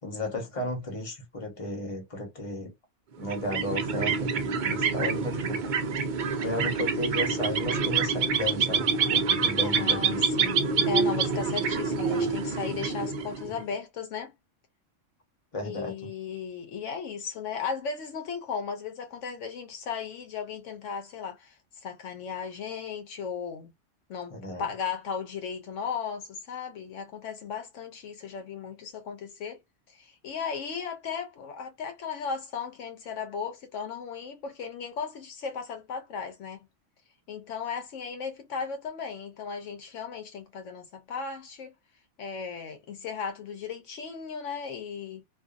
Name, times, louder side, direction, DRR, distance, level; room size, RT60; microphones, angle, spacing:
voice 1, 0.0-2.7 3.2-5.7 6.3-10.2 12.1-12.3 13.4-13.5 15.5-16.1 24.3-24.7, left 1 dB, 30° left, 1.0 m, -34 dB
sound 1, 3.2-13.6, right 5 dB, 55° right, 0.5 m, -27 dB
voice 2, 9.6-14.3 15.6-23.7 24.1-29.6 29.9-36.7 37.3-41.7 42.2-45.2, left 6 dB, 75° left, 0.9 m, -36 dB
2.5 x 2.5 x 2.4 m
omnidirectional pair, 1.3 m